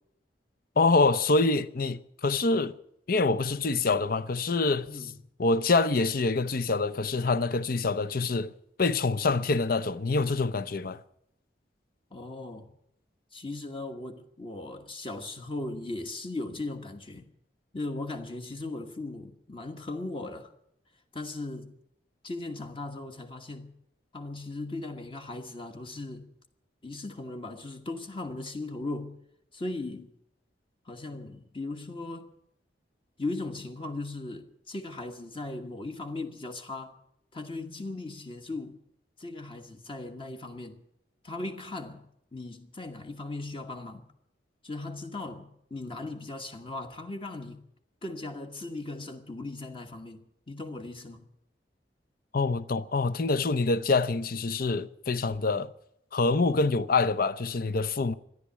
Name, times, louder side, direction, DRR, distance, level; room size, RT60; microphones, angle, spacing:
voice 1, 0.8-2.7 3.1-4.9 5.4-8.5 8.8-11.0 52.3-55.7 56.1-58.1, left 3 dB, 55° left, 0.7 m, -26 dB
voice 2, 12.1-12.7 13.3-17.3 17.7-20.5 21.1-21.8 22.2-23.7 24.1-26.3 26.8-29.2 29.5-30.1 30.8-32.3 33.2-37.0 37.3-38.8 39.2-40.8 41.2-42.0 42.3-44.1 44.6-47.7 48.0-51.3, left 2 dB, 30° left, 1.3 m, -38 dB
13.5 x 11.0 x 9.7 m
head